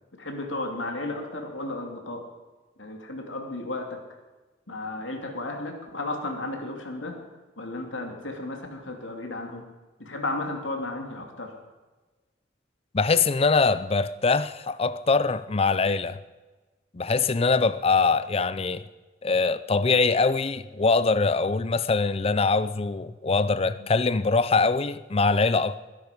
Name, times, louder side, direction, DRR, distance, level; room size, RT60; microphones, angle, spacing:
voice 1, 0.2-2.3 2.8-4.0 4.7-7.2 7.6-9.7 10.0-11.5 23.8-23.9, left 2 dB, 85° left, 2.6 m, -33 dB
voice 2, 12.9-16.2 16.9-18.9 19.2-25.8, left 4 dB, 30° left, 0.5 m, -23 dB
21.5 x 10.5 x 5.2 m
head